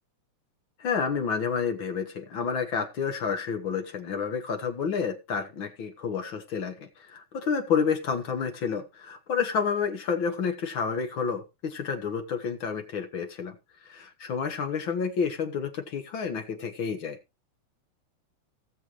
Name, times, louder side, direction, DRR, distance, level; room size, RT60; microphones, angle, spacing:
voice 1, 0.8-13.6 13.8-17.2, left 6 dB, 50° left, 6 dB, 1.8 m, -30 dB
18.0 x 6.9 x 3.1 m, 0.25 s
omnidirectional pair, 3.4 m